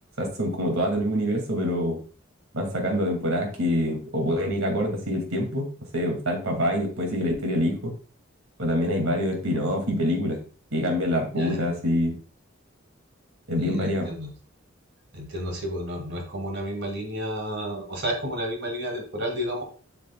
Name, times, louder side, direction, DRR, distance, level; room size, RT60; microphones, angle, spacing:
voice 1, 0.2-2.0 2.5-7.9 8.6-10.4 10.7-12.1 13.5-14.1, equal, 85° right, 2 dB, 2.2 m, -25 dB
voice 2, 11.4-11.8 13.6-14.3 15.1-19.7, equal, 55° right, 3 dB, 1.8 m, -31 dB
7.7 x 6.7 x 2.2 m, 0.38 s
head